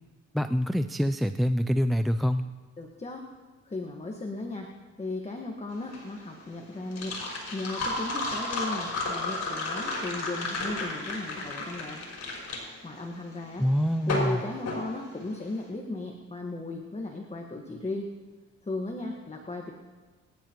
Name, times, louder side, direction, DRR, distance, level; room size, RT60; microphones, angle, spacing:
voice 1, 0.3-2.5 13.6-14.4, equal, ahead, 10 dB, 0.4 m, -25 dB
voice 2, 2.8-3.3 3.6-4.7 5.0-7.2 7.5-12.0 12.8-13.7 14.1-18.1 18.6-19.7, left 2 dB, 20° left, 2 dB, 1.5 m, -36 dB
sound 1, 5.7-15.6, left 2 dB, 60° left, 5.2 m, -33 dB
24.5 x 11.5 x 3.0 m, 1.3 s
cardioid pair, 90°, 30 cm